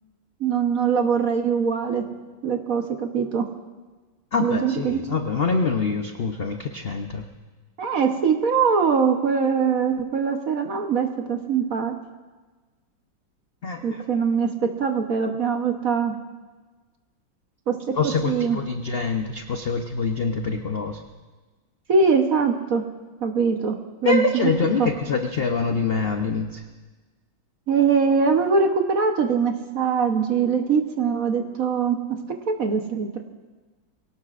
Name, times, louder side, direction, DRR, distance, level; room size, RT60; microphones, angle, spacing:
voice 1, 0.4-2.0 2.4-3.5 4.4-5.0 7.8-12.0 13.8-16.1 17.7-17.9 18.2-18.6 21.9-22.8 23.2-24.5 24.8-24.9 27.7-32.2 32.5-33.2, right 5 dB, 55° right, 4 dB, 1.2 m, -22 dB
voice 2, 4.3-7.2 13.6-14.0 18.0-21.0 24.0-26.6, left 4 dB, 65° left, 4 dB, 0.5 m, -25 dB
23.5 x 18.0 x 2.5 m, 1.3 s
omnidirectional pair, 2.1 m